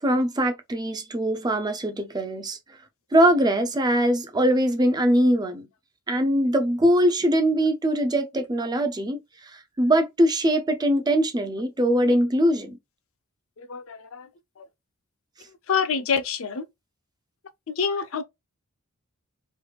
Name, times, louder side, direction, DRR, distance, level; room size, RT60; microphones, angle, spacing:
voice 1, 0.0-2.6 3.1-5.7 6.1-9.2 9.5-12.8, right 1 dB, 20° right, 0.4 m, -22 dB
voice 2, 13.6-14.3 14.6-14.7 15.7-16.6 17.7-18.2, left 6 dB, 65° left, 0.5 m, -27 dB
3.3 x 3.2 x 2.3 m
head